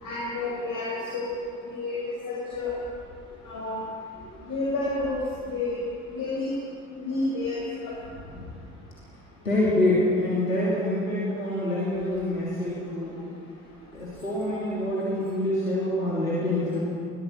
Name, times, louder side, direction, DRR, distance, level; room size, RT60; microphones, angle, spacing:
voice 1, 0.0-1.3 1.7-2.0 2.3-2.7 3.4-3.8 4.5-5.2 5.5-5.7 6.1-6.5 6.9-7.9, left 2 dB, 55° left, -5 dB, 6.6 m, -30 dB
voice 2, 9.4-13.1 13.9-16.8, left 1 dB, 85° left, -8 dB, 3.1 m, -26 dB
21.5 x 18.0 x 7.3 m, 2.3 s
figure-of-eight pair, 50°, 39 cm